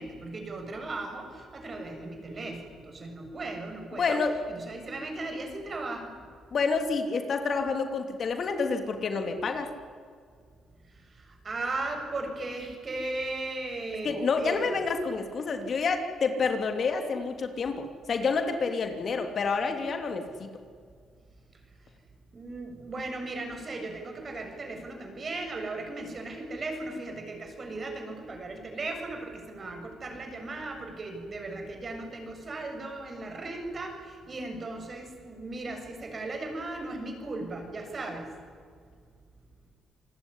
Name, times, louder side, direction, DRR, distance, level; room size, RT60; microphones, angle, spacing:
voice 1, 0.0-4.2 4.5-6.1 11.4-14.8 22.3-38.3, right 2 dB, 40° right, 4 dB, 7.1 m, -37 dB
voice 2, 3.9-4.3 6.5-9.7 14.0-20.5, left 4 dB, 50° left, 6 dB, 3.0 m, -28 dB
28.0 x 20.0 x 10.0 m, 2.1 s
cardioid pair, 90°, 0 cm